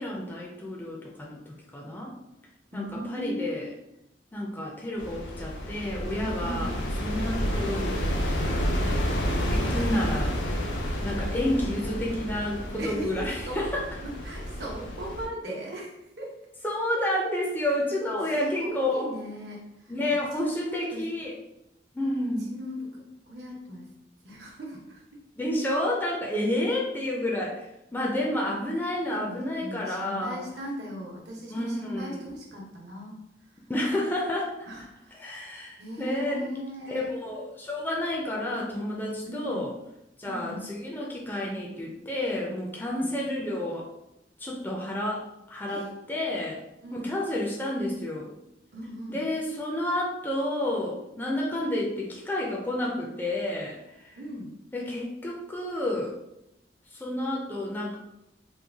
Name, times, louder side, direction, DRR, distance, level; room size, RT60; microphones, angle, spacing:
voice 1, 0.0-2.1 2.7-3.7 4.3-6.7 7.0-8.2 8.8-9.0 9.5-10.4 11.0-13.8 16.6-19.1 19.9-21.3 21.9-22.4 25.4-30.4 31.5-32.2 33.7-34.5 35.2-36.5 36.9-39.7 40.2-43.9 44.4-46.6 46.9-48.3 49.1-54.2 54.7-56.1 56.9-57.9, left 1 dB, 10° left, -3 dB, 0.4 m, -30 dB
voice 2, 2.7-3.7 6.4-6.8 12.8-13.7 14.0-16.4 18.2-19.9 20.3-21.1 22.4-23.0 23.3-23.9 24.2-25.0 29.1-33.2 33.5-33.6 34.7-35.3 35.8-37.1 39.3-39.7 40.2-40.7 43.0-43.1 45.7-45.9 46.8-47.1 48.7-49.2 54.1-54.5, equal, 75° right, -2 dB, 0.9 m, -38 dB
sound 1, 5.0-15.3, equal, 90° left, 0.6 m, -30 dB
3.1 x 2.3 x 3.4 m, 0.88 s
head